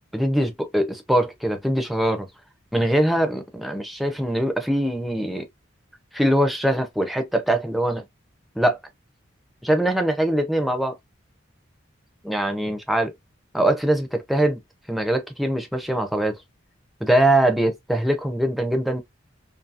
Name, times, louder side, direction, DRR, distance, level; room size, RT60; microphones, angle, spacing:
voice 1, 0.1-2.3 2.7-5.5 6.1-8.0 8.6-8.8 9.6-11.0 12.2-13.1 13.5-14.6 14.9-16.4 17.0-19.0, right 1 dB, ahead, 0.5 m, -22 dB
2.7 x 2.6 x 2.4 m
head